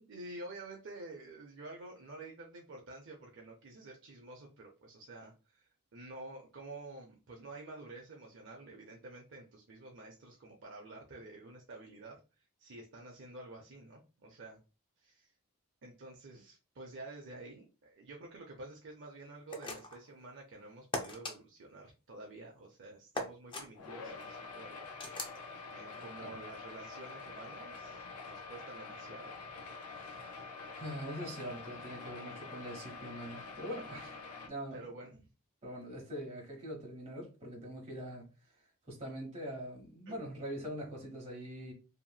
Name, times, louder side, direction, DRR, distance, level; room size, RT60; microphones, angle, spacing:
voice 1, 0.1-5.6 5.9-12.2 12.6-14.6 15.0-15.3 15.8-24.9 25.7-29.3 34.7-35.3 40.1-40.2, right 2 dB, 55° right, 0.5 m, -49 dB
sound 1, 19.5-20.1 20.9-21.4 23.1-23.7 25.0-25.4, left 2 dB, 20° left, 0.4 m, -39 dB
sound 2, 23.8-34.5, left 4 dB, 85° left, 0.5 m, -46 dB
voice 2, 26.0-26.4 29.9-30.3 30.7-34.8 35.6-38.3 38.9-41.7, equal, 30° right, 1.1 m, -43 dB
2.9 x 2.8 x 2.3 m
head